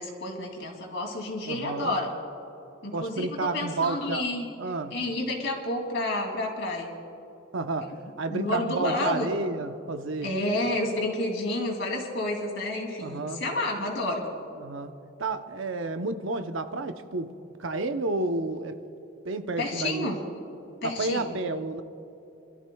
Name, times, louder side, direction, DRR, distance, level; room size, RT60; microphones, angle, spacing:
voice 1, 0.0-2.1 2.8-4.5 4.9-6.9 7.8-7.9 8.3-9.4 10.2-14.2 19.6-20.2 20.8-21.3, left 2 dB, 65° left, 0 dB, 2.7 m, -30 dB
voice 2, 1.5-2.0 2.9-4.2 4.6-4.9 7.5-10.3 10.6-10.7 13.0-13.4 14.6-14.9 15.2-17.3 17.6-18.8 19.2-20.1 20.8-21.8, right 3 dB, 75° right, 8 dB, 0.8 m, -31 dB
28.5 x 13.5 x 2.3 m, 3.0 s
head